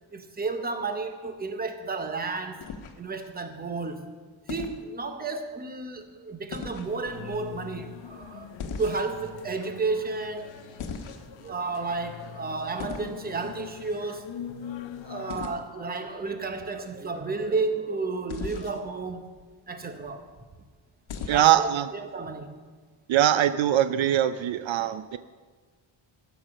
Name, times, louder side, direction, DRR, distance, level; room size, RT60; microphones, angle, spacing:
voice 1, 0.1-2.6 3.0-4.1 4.5-10.5 11.4-14.3 15.0-19.3 19.7-20.3 21.2-22.5, right 3 dB, 20° right, 7 dB, 0.8 m, -32 dB
sound 1, 2.6-3.3 4.5-4.8 6.5-6.9 8.6-9.3 10.8-11.5 12.8-13.1 15.3-15.6 18.3-18.8 21.1-21.7, left 5 dB, 80° left, 1.2 m, -37 dB
sound 2, 6.9-15.5, left 8 dB, 65° left, 0.8 m, -43 dB
voice 2, 21.3-21.8 23.1-25.2, right 11 dB, 70° right, 12 dB, 0.5 m, -22 dB
14.5 x 6.1 x 6.2 m, 1.4 s
wide cardioid pair, 170°, 48 cm